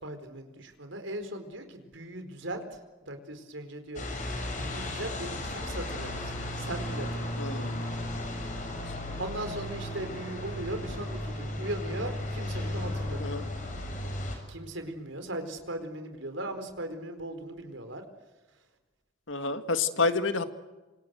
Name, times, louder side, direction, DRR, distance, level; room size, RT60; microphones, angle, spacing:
voice 1, 0.0-4.1 4.6-7.7 9.2-13.4 14.5-18.0, right 1 dB, 80° right, 7 dB, 4.6 m, -38 dB
sound 1, 4.0-14.4, left 1 dB, 40° left, 6.4 m, -35 dB
voice 2, 7.4-7.8 8.9-9.0 13.2-13.4 19.3-20.4, left 4 dB, 85° left, 9 dB, 2.0 m, -29 dB
27.0 x 26.5 x 7.9 m, 1.2 s
head